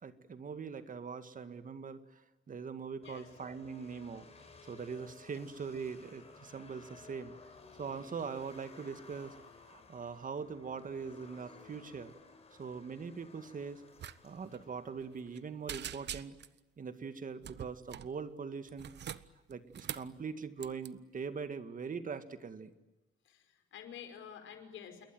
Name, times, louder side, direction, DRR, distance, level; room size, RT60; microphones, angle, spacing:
voice 1, 0.0-2.2 2.5-4.3 4.7-7.3 7.8-9.4 9.7-12.1 12.6-13.8 14.2-16.4 16.8-18.9 19.5-22.7, right 5 dB, 40° right, 10 dB, 2.1 m, -42 dB
sound 1, 3.0-16.1, left 3 dB, 30° left, 6.0 m, -57 dB
sound 2, 14.0-14.2 14.4-14.6 15.0-15.4 15.7-16.6 17.4-18.1 18.7-20.1 20.6-20.9, right 10 dB, 60° right, 1.1 m, -43 dB
voice 2, 23.3-25.0, left 8 dB, 80° left, 7 dB, 5.2 m, -49 dB
28.5 x 21.5 x 9.4 m, 1.1 s
cardioid pair, 90°, 20 cm